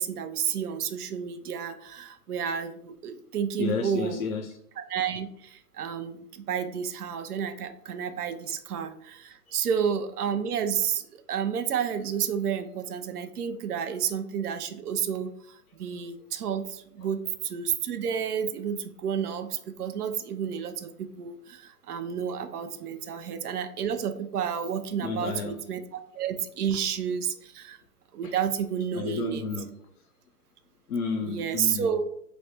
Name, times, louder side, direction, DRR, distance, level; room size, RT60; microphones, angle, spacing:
voice 1, 0.0-4.2 4.9-25.8 26.1-27.8 28.1-29.4 31.2-32.0, right 8 dB, 70° right, 9 dB, 0.6 m, -31 dB
voice 2, 3.6-4.6 9.5-9.6 17.0-17.1 25.0-25.6 28.2-28.3 28.9-29.7 30.9-32.0, left 4 dB, 60° left, 3 dB, 0.6 m, -31 dB
3.4 x 2.1 x 4.1 m, 0.69 s
hypercardioid pair, 140°, 47 cm